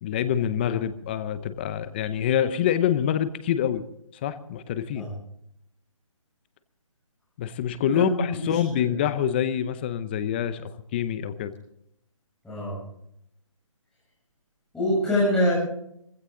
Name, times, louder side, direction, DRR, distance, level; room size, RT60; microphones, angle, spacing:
voice 1, 0.0-3.8 4.2-5.1 7.4-11.5, left 10 dB, 20° left, 13 dB, 0.7 m, -26 dB
voice 2, 7.8-9.0 12.4-12.8 14.7-15.5, left 1 dB, 5° left, -9 dB, 7.3 m, -25 dB
21.5 x 16.0 x 3.8 m, 0.75 s
hypercardioid pair, 160°, 17 cm